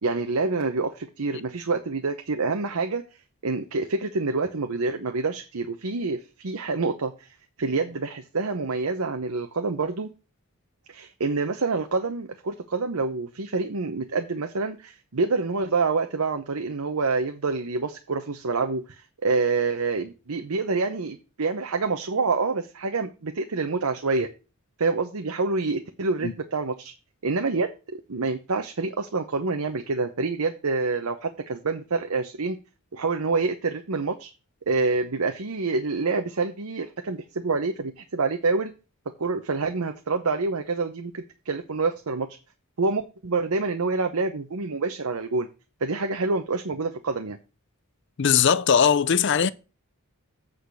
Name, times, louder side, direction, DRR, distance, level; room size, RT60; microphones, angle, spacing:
voice 1, 0.0-3.0 3.4-7.3 7.6-10.1 10.9-24.3 24.8-26.9 27.2-27.7 28.1-32.6 32.9-34.3 34.7-38.7 39.2-42.3 42.8-45.5 45.8-47.4, right 3 dB, 85° right, 0.8 m, -27 dB
voice 2, 48.2-49.5, left 7 dB, 55° left, 0.5 m, -20 dB
8.3 x 5.0 x 6.2 m
head